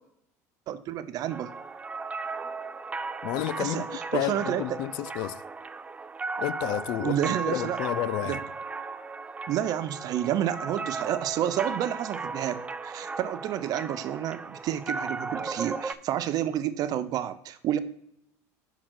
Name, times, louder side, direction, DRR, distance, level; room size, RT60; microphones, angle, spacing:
voice 1, 0.7-1.5 3.6-4.8 7.0-7.8 8.3-8.4 9.5-17.8, right 11 dB, 55° right, 0.6 m, -30 dB
sound 1, 1.3-15.9, right 4 dB, 15° right, 0.4 m, -36 dB
voice 2, 3.2-3.8 4.1-5.4 6.4-7.2 7.5-8.4, left 16 dB, 65° left, 0.4 m, -31 dB
6.1 x 3.8 x 6.2 m
supercardioid pair, 100°, 8 cm